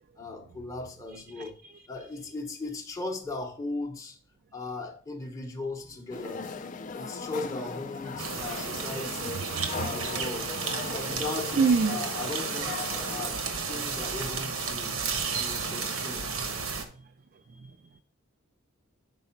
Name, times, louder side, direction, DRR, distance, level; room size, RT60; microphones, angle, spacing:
voice 1, 0.2-1.6 1.9-4.2 4.5-6.4 7.0-9.4 9.8-10.5 10.9-12.8 13.1-13.4 13.7-15.0 15.3-16.3, left 3 dB, 15° left, 0.8 m, -37 dB
sound 1, 6.1-13.3, left 5 dB, 40° left, 0.4 m, -38 dB
voice 2, 8.2-8.6 9.5-9.9 11.6-12.0, right 5 dB, 45° right, 0.3 m, -26 dB
sound 2, 8.2-16.8, right 5 dB, 90° right, 1.1 m, -32 dB
5.4 x 4.8 x 5.7 m
head